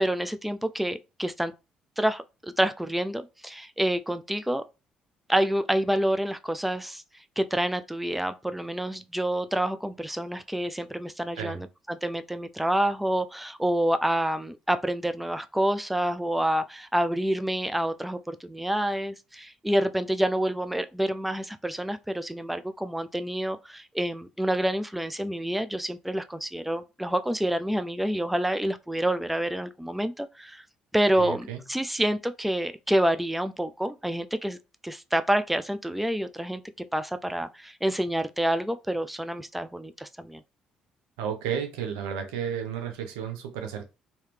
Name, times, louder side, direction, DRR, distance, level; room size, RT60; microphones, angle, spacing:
voice 1, 0.0-1.5 2.0-4.6 5.3-7.0 7.4-30.6 30.9-34.6 34.8-36.6 36.9-40.4, right 1 dB, 5° right, 0.4 m, -28 dB
voice 2, 31.2-31.6 41.2-43.8, right 8 dB, 90° right, 0.7 m, -32 dB
3.0 x 2.8 x 3.3 m
supercardioid pair, 60°, 3 cm